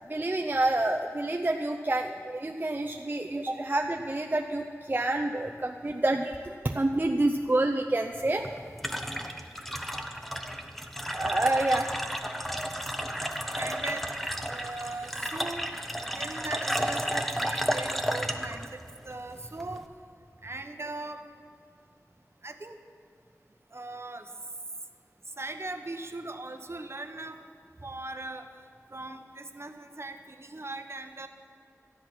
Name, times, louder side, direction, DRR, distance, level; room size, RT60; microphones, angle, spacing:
voice 1, 0.1-8.4 11.1-11.9, right 2 dB, 35° right, 2 dB, 0.6 m, -28 dB
sound 1, 8.1-19.9, equal, 5° left, 0.9 m, -33 dB
voice 2, 13.5-14.1 14.5-19.8 20.4-21.2 22.4-22.8 23.7-24.3 25.4-27.4 27.8-28.5 28.9-31.3, right 2 dB, 50° right, 7 dB, 1.0 m, -39 dB
13.5 x 10.5 x 6.0 m, 2.4 s
wide cardioid pair, 65°, 6 cm